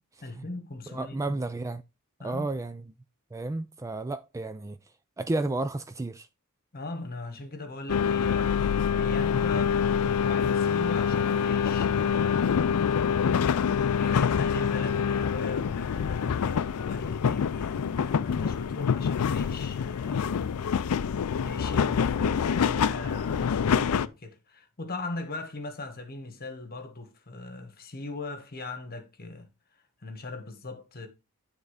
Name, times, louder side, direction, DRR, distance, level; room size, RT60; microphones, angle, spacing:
voice 1, 0.2-1.4 2.2-2.6 6.7-12.5 14.0-20.6 21.4-29.5 30.0-31.1, left 2 dB, 45° left, 1.3 m, -39 dB
voice 2, 0.9-1.8 2.2-2.8 3.3-4.8 5.2-6.3, right 2 dB, 15° right, 0.3 m, -32 dB
sound 1, 7.9-24.1, left 7 dB, 80° left, 0.4 m, -26 dB
9.4 x 3.6 x 4.9 m
head